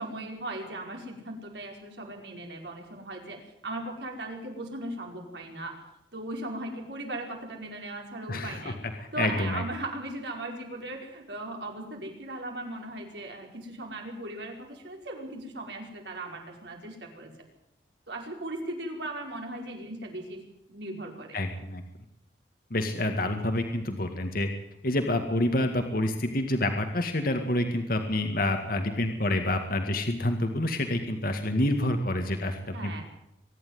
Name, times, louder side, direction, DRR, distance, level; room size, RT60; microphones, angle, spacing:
voice 1, 0.0-5.8 6.1-8.8 9.1-17.3 18.1-20.4 20.7-21.4 32.7-33.0, right 1 dB, 75° right, 2 dB, 5.1 m, -38 dB
voice 2, 8.3-9.6 21.3-21.8 22.7-24.5 24.8-33.0, left 1 dB, 55° left, 5 dB, 2.0 m, -28 dB
24.0 x 11.0 x 9.6 m, 0.82 s
head